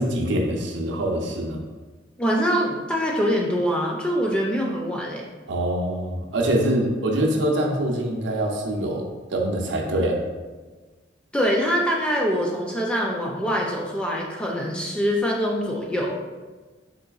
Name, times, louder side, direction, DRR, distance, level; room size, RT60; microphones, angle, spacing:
voice 1, 0.0-1.6 5.5-10.2, right 1 dB, 75° right, 1 dB, 0.6 m, -24 dB
voice 2, 2.2-5.3 11.3-16.1, equal, 5° left, -2 dB, 0.3 m, -24 dB
3.8 x 3.2 x 2.3 m, 1.3 s
head